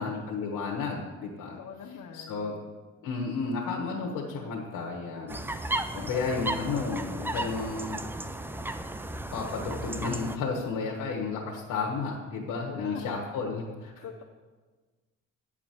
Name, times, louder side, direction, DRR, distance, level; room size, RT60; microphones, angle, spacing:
voice 1, 0.0-1.6 2.1-2.5 3.0-5.4 5.7-8.0 9.3-14.0, left 4 dB, 90° left, -1 dB, 1.3 m, -32 dB
voice 2, 1.6-2.6 12.8-13.1 14.0-14.2, left 7 dB, 65° left, 0 dB, 1.0 m, -42 dB
sound 1, 5.3-10.4, right 1 dB, 5° right, 0.5 m, -34 dB
9.8 x 4.9 x 7.5 m, 1.4 s
cardioid pair, 90°, 30 cm